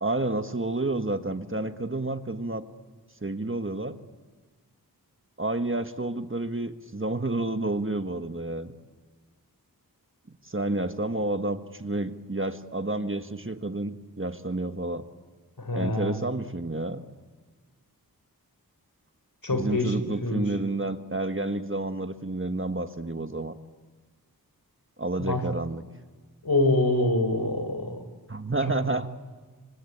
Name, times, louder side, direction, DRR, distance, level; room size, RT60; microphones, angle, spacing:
voice 1, 0.0-2.7 3.2-4.0 5.4-8.7 10.5-15.0 15.7-17.0 19.5-23.6 25.0-25.9 28.3-29.1, right 2 dB, 35° right, 8 dB, 1.5 m, -30 dB
voice 2, 15.6-16.2 19.4-20.0 20.2-20.4 25.2-25.4 26.4-28.0, left 2 dB, 65° left, 8 dB, 4.2 m, -25 dB
27.0 x 25.5 x 8.7 m, 1.4 s
wide cardioid pair, 50°, 37 cm